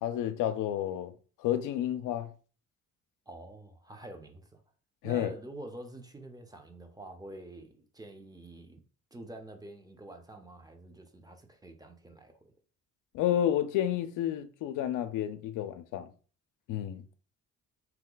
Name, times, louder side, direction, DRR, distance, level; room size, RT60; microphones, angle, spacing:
voice 1, 0.0-1.1 1.4-2.3 5.0-5.3 13.1-16.1 16.7-17.1, left 11 dB, 85° left, 0.5 m, -30 dB
voice 2, 3.3-4.6 5.0-8.8 9.1-12.5, right 1 dB, 15° right, 0.6 m, -47 dB
2.8 x 2.2 x 3.8 m
cardioid pair, 90°, 30 cm